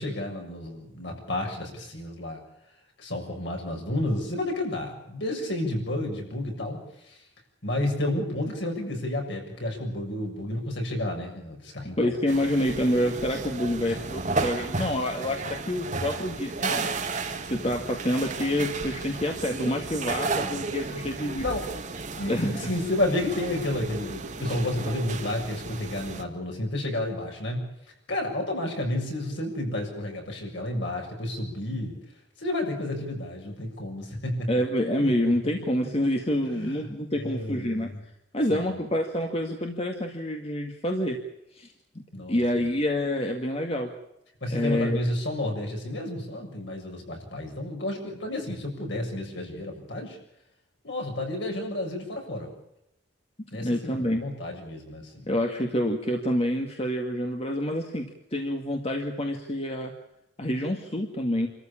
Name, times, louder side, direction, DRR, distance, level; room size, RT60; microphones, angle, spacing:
voice 1, 0.0-2.4 3.0-6.8 7.1-7.2 7.6-12.1 13.9-14.0 20.4-21.0 21.4-21.7 22.2-27.6 28.1-32.0 32.4-34.6 35.0-35.1 35.4-35.5 36.5-36.8 37.1-38.0 38.5-38.8 42.1-42.7 44.4-50.2 50.8-52.5 53.5-55.3, left 1 dB, 65° left, 1 dB, 7.2 m, -31 dB
voice 2, 11.8-16.9 17.5-21.5 22.3-22.8 34.5-37.9 38.3-41.2 41.5-41.7 42.3-43.9 44.5-45.0 53.6-54.2 55.3-59.9 60.4-61.5, left 1 dB, 30° left, 2 dB, 2.0 m, -27 dB
sound 1, 12.3-26.2, right 3 dB, 40° right, 1.7 m, -33 dB
28.0 x 14.0 x 8.7 m, 0.81 s
head